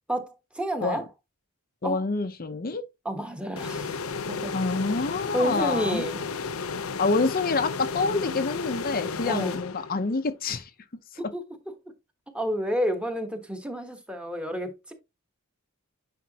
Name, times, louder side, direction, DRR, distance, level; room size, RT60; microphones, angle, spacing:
voice 1, 0.1-1.0 1.8-2.0 3.0-4.0 4.3-4.5 5.3-6.2 9.2-9.6 11.3-11.4 12.3-14.9, equal, 5° right, 1.2 m, -29 dB
voice 2, 1.8-2.8 4.5-6.0 7.0-10.7, left 3 dB, 45° left, 0.7 m, -27 dB
sound 1, 3.6-10.2, left 4 dB, 85° left, 0.7 m, -33 dB
9.4 x 5.0 x 2.8 m
head